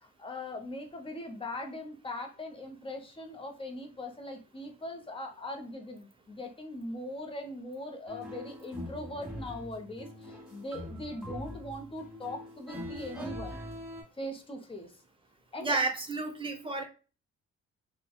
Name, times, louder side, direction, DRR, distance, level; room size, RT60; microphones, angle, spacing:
voice 1, 0.0-13.6 14.2-14.9 15.5-15.8, left 1 dB, 20° left, 0.7 m, -40 dB
sound 1, 8.1-14.0, equal, ahead, 1.3 m, -43 dB
voice 2, 15.6-16.8, right 3 dB, 15° right, 0.7 m, -31 dB
2.6 x 2.1 x 2.3 m
supercardioid pair, 65°, 30 cm